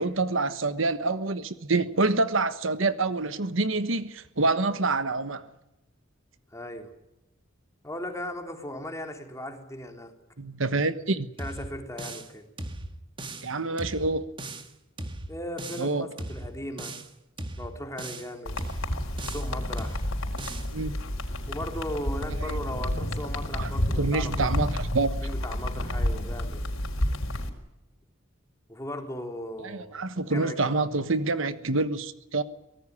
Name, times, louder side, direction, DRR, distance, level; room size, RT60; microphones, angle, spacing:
voice 1, 0.0-5.5 10.4-11.3 13.4-14.3 15.8-16.1 20.7-20.9 22.4-22.6 23.5-23.7 24.0-25.1 29.6-32.4, right 3 dB, 70° right, 1.3 m, -27 dB
voice 2, 6.5-6.9 7.8-10.1 11.4-12.5 15.3-17.0 17.6-18.6 19.1-20.0 21.5-24.5 25.2-26.7 28.7-30.6, left 1 dB, 15° left, 3.4 m, -37 dB
sound 1, 11.4-12.3 12.6-13.5 13.8-14.7 15.0-15.9 16.2-17.1 17.4-18.3 18.6-19.5 19.8-20.7, right 2 dB, 25° right, 1.9 m, -38 dB
sound 2, 18.5-27.5, left 1 dB, 90° left, 4.3 m, -30 dB
24.5 x 18.5 x 9.8 m
head